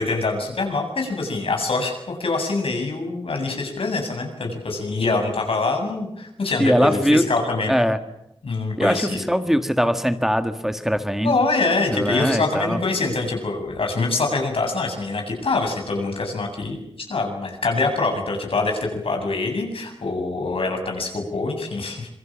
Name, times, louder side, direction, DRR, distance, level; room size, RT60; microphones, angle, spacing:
voice 1, 0.0-7.7 8.4-9.2 11.2-22.1, left 3 dB, 80° left, 4 dB, 7.5 m, -24 dB
voice 2, 6.6-7.3 7.7-8.0 8.8-11.3 11.9-12.8, equal, 5° right, 7 dB, 1.7 m, -21 dB
26.5 x 23.5 x 7.4 m, 0.83 s
wide cardioid pair, 115°, 9 cm